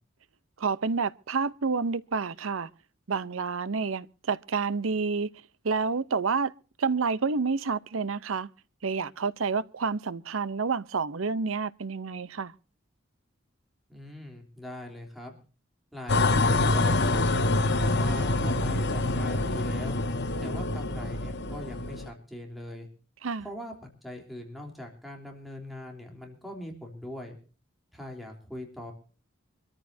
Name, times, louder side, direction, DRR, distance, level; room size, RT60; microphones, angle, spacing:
voice 1, 0.6-2.7 3.1-5.3 5.6-6.5 6.8-8.5 8.8-12.5 23.2-23.5, right 5 dB, 90° right, 0.7 m, -29 dB
voice 2, 13.9-15.3 15.9-20.0 20.4-22.9 23.4-27.4 27.9-28.9, left 1 dB, ahead, 3.3 m, -42 dB
sound 1, 16.1-22.1, left 2 dB, 60° left, 1.3 m, -26 dB
25.5 x 14.0 x 2.7 m
head